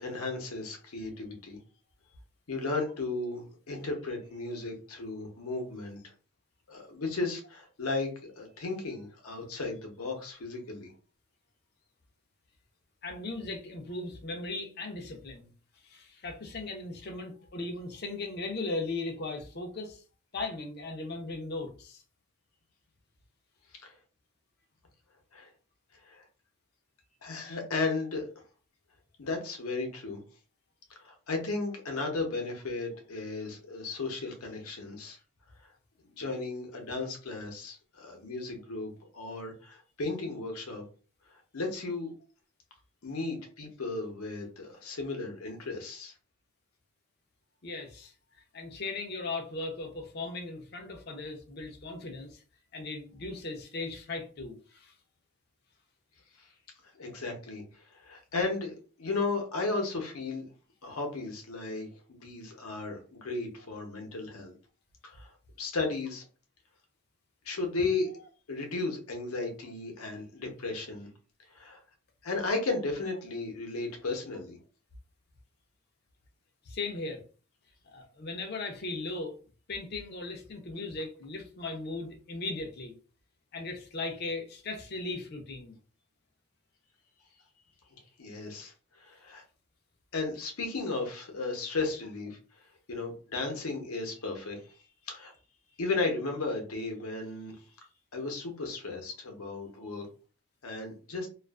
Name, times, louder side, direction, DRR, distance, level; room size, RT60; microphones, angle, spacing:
voice 1, 0.0-1.6 2.5-6.0 6.7-10.9 23.8-23.9 25.3-25.5 26.0-26.2 27.2-28.3 29.2-30.2 31.0-35.2 36.0-40.8 41.5-42.1 43.0-46.1 57.0-57.6 58.0-60.5 60.8-64.5 65.0-65.3 65.6-66.2 67.5-68.1 68.5-71.1 71.5-71.8 72.2-74.6 88.2-88.7 89.0-89.4 90.1-92.4 92.9-94.6 95.1-95.3 95.8-97.5 98.1-100.1 100.6-101.3, left 3 dB, 80° left, 0.8 m, -35 dB
voice 2, 13.0-15.5 15.8-20.0 20.3-22.0 47.6-48.1 48.5-52.4 52.7-54.9 76.7-77.2 77.9-79.4 79.7-82.9 83.5-85.7, left 3 dB, 45° left, 0.5 m, -37 dB
2.5 x 2.4 x 2.3 m
head